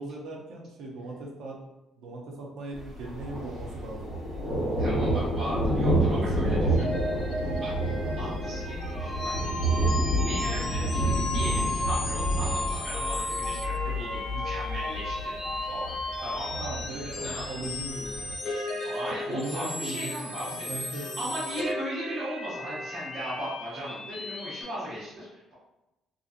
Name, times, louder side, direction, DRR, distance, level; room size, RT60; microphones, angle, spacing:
voice 1, 0.0-1.6 2.0-4.1 5.9-6.0 6.3-6.7 13.4-13.5 16.5-18.3 19.3-21.3, right 2 dB, 70° right, -2 dB, 0.5 m, -38 dB
Thunder, 2.8-18.3, right 1 dB, 90° right, 1.5 m, -29 dB
voice 2, 4.8-6.9 7.6-9.8 10.2-15.9 16.2-16.7 17.0-17.6 18.8-25.5, equal, 40° right, -12 dB, 1.1 m, -37 dB
sound 1, 6.7-24.6, left 1 dB, 45° left, 0.7 m, -37 dB
sound 2, 8.8-16.5, left 2 dB, 10° left, 0.8 m, -35 dB
2.5 x 2.4 x 2.4 m, 0.96 s
cardioid pair, 150°, 0 cm